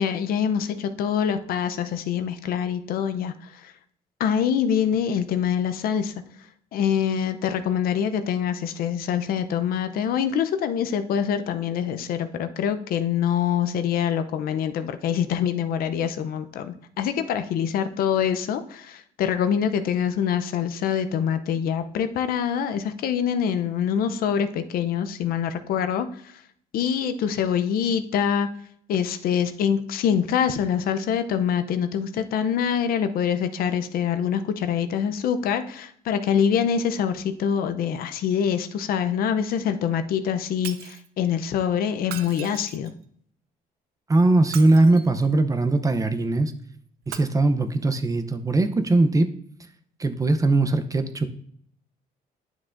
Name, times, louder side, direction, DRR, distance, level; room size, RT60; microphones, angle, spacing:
voice 1, 0.0-3.7 4.2-6.1 6.7-26.1 26.7-28.5 28.9-42.9, left 8 dB, 70° left, 9 dB, 0.6 m, -25 dB
Shatter, 40.6-41.1 42.0-43.0 44.4-45.3 47.0-47.2, right 10 dB, 85° right, 0.6 m, -38 dB
voice 2, 44.1-46.5 47.1-49.3 50.0-51.3, right 2 dB, 20° right, 9 dB, 0.6 m, -20 dB
9.9 x 6.0 x 2.6 m, 0.63 s
cardioid pair, 100°, 16 cm